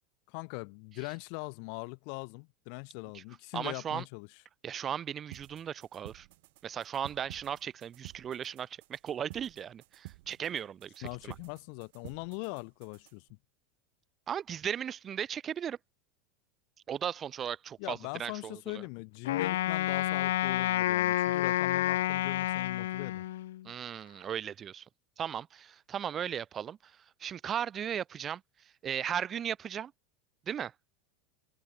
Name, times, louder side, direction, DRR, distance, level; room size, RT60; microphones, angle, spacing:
voice 1, 0.3-4.3 11.0-13.3 17.8-23.2, left 40 dB or more, 60° left, 1.1 m, -41 dB
voice 2, 3.5-4.0 4.6-6.3 6.6-11.3 14.3-15.8 16.9-18.8 23.6-24.8 25.2-26.9 27.2-28.4 28.8-29.9 30.5-30.7, right 9 dB, 30° right, 2.4 m, -36 dB
sound 1, 5.3-13.3, right 22 dB, 70° right, 3.7 m, -52 dB
Wind instrument woodwind instrument, 19.3-23.7, left 14 dB, 85° left, 0.5 m, -29 dB
open air
supercardioid pair, 135°, 0 cm